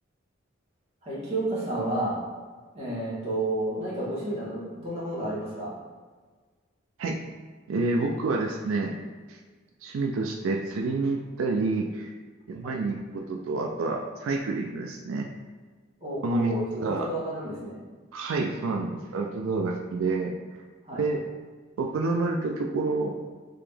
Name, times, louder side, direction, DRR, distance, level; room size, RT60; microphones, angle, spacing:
voice 1, 1.0-2.2 2.7-5.7 12.6-12.8 16.0-17.8 20.8-21.0, right 1 dB, 30° right, -8 dB, 1.2 m, -31 dB
voice 2, 7.7-8.9 9.3-9.4 9.8-12.1 12.5-15.3 16.2-17.1 18.1-20.3 21.0-21.2 21.8-23.2, right 3 dB, 85° right, 2 dB, 0.3 m, -28 dB
3.7 x 2.9 x 3.3 m, 1.4 s
head